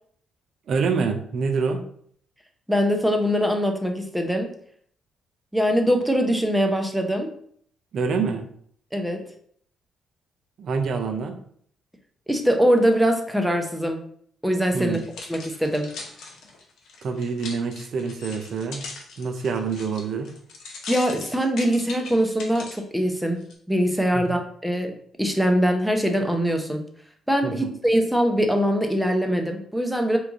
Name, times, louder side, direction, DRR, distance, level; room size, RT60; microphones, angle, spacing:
voice 1, 0.7-1.8 7.9-8.4 10.6-11.4 14.7-15.0 17.0-18.9 19.2-20.3 24.1-24.2 27.4-27.7, right 5 dB, 60° right, 6 dB, 0.5 m, -26 dB
voice 2, 2.7-4.5 5.5-7.3 8.9-9.3 12.3-14.0 14.4-15.0 15.3-15.9 20.9-23.4 23.7-24.9 25.2-26.8 27.3-30.2, equal, ahead, 4 dB, 0.6 m, -22 dB
sound 1, 14.8-22.8 23.4-23.5, left 3 dB, 75° left, 0.7 m, -40 dB
3.1 x 2.4 x 3.5 m, 0.62 s
cardioid pair, 90°, 0 cm